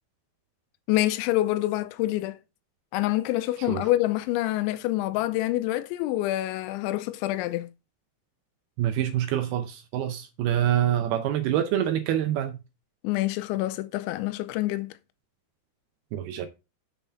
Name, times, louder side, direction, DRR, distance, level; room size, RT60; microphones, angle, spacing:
voice 1, 0.9-2.4 2.9-7.7 13.0-14.9, left 16 dB, 90° left, 3.0 m, -26 dB
voice 2, 8.8-12.6 16.1-16.5, right 11 dB, 75° right, 2.4 m, -26 dB
7.1 x 5.4 x 5.6 m
omnidirectional pair, 5.2 m